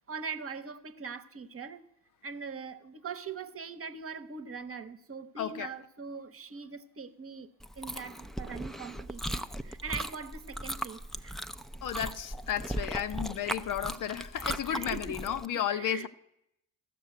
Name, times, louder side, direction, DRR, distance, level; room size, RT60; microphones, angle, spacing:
voice 1, 0.1-1.8 2.2-7.5 7.8-11.4 14.7-15.2 15.7-16.1, right 5 dB, 35° right, 1.1 m, -41 dB
voice 2, 5.4-5.7 11.8-16.1, left 10 dB, 55° left, 0.7 m, -33 dB
Chewing mastication, 7.6-15.4, equal, ahead, 0.6 m, -38 dB
14.0 x 6.8 x 7.8 m
hypercardioid pair, 45°, 39 cm